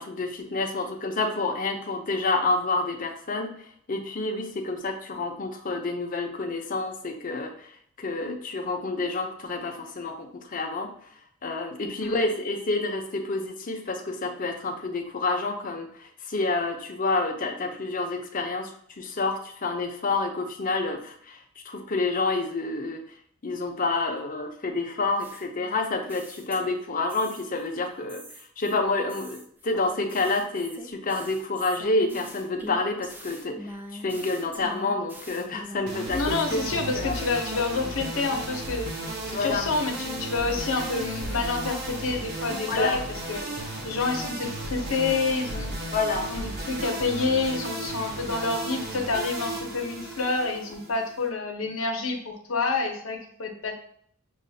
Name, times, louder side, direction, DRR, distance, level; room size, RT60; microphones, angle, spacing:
voice 1, 0.0-10.9 11.4-18.7 19.0-23.0 23.4-28.2 28.6-36.6 36.9-37.2 39.3-39.6 42.7-43.0 45.9-46.3, left 3 dB, 40° left, 3 dB, 0.6 m, -28 dB
sound 1, 25.2-26.8 27.1-27.7 28.1-38.2 38.5-42.0, equal, 10° right, 0.4 m, -45 dB
sound 2, 35.9-51.3, right 1 dB, 55° right, 0.9 m, -34 dB
voice 2, 36.1-38.9 39.2-43.0 43.3-43.4 43.8-45.7 46.3-53.7, left 3 dB, 80° left, 3 dB, 0.8 m, -28 dB
6.3 x 2.4 x 2.7 m, 0.62 s
head